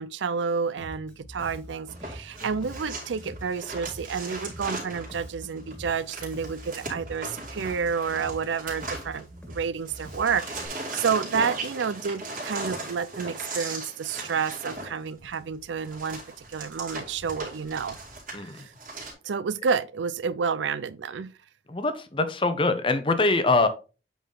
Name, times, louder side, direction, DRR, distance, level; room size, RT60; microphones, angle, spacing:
voice 1, 0.0-18.0 18.4-18.7 19.2-21.3, right 6 dB, 80° right, 0.4 m, -30 dB
Bass guitar, 0.8-10.7, equal, 5° left, 1.7 m, -44 dB
sound 1, 1.9-9.6 9.8-19.1, right 2 dB, 45° right, 2.6 m, -38 dB
voice 2, 18.3-18.6 21.7-23.7, left 3 dB, 25° left, 0.7 m, -23 dB
8.3 x 3.9 x 3.8 m
head